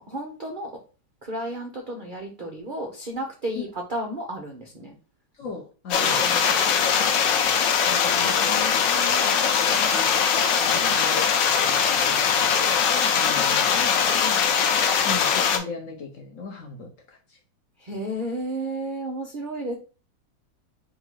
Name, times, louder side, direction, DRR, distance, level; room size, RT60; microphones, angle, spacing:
voice 1, 0.1-0.7 1.2-4.9 5.9-7.5 8.2-10.0 10.8-11.0 14.2-14.4 17.8-19.8, right 1 dB, 70° right, 2 dB, 0.4 m, -34 dB
voice 2, 5.3-6.4 7.5-11.2 11.6-12.5 12.9-14.0 15.0-17.4, left 3 dB, 60° left, 1 dB, 0.9 m, -38 dB
sound 1, 5.9-15.6, left 7 dB, 75° left, 1.3 m, -21 dB
3.6 x 2.7 x 4.5 m, 0.35 s
omnidirectional pair, 2.0 m